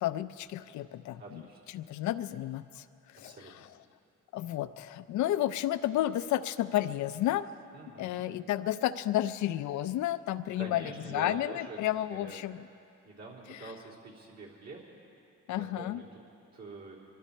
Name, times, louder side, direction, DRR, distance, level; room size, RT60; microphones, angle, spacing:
voice 1, 0.0-1.4 1.7-2.8 3.1-3.5 4.3-7.5 8.0-12.6 13.5-13.7 15.5-16.0, left 13 dB, 70° left, 13 dB, 0.5 m, -32 dB
voice 2, 1.2-1.6 3.2-3.5 7.7-8.2 10.6-11.8 12.2-12.4 13.0-14.8 15.5-16.2 16.5-17.0, right 3 dB, 60° right, -4 dB, 3.6 m, -45 dB
24.0 x 12.5 x 4.3 m, 2.6 s
cardioid pair, 90°, 30 cm